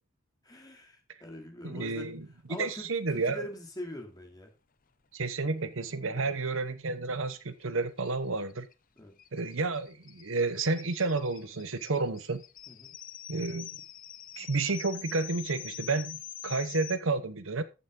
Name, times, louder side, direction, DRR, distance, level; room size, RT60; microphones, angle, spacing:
voice 1, 0.4-2.1 2.5-4.5 6.1-6.2 9.0-9.1 12.7-12.9, left 1 dB, 20° left, 2.6 m, -43 dB
voice 2, 1.6-3.4 5.1-8.7 9.3-12.4 13.3-13.7 14.4-16.2 16.4-17.6, right 3 dB, 65° right, 0.9 m, -31 dB
sound 1, 7.3-7.4 7.6-7.7 8.0-17.0, left 11 dB, 40° left, 0.7 m, -45 dB
14.5 x 6.4 x 3.7 m
head